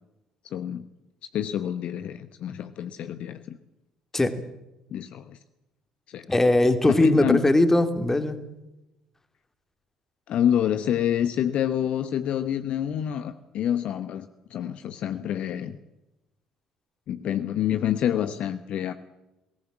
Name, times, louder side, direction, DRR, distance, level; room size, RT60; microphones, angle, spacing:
voice 1, 0.5-0.9 1.3-3.6 4.9-5.4 6.1-6.3 6.9-7.4 10.3-15.8 17.1-18.9, left 10 dB, 50° left, 11 dB, 1.0 m, -27 dB
voice 2, 6.3-8.4, left 2 dB, 15° left, 9 dB, 2.6 m, -20 dB
21.0 x 18.5 x 8.8 m, 0.95 s
figure-of-eight pair, 50°, 2 cm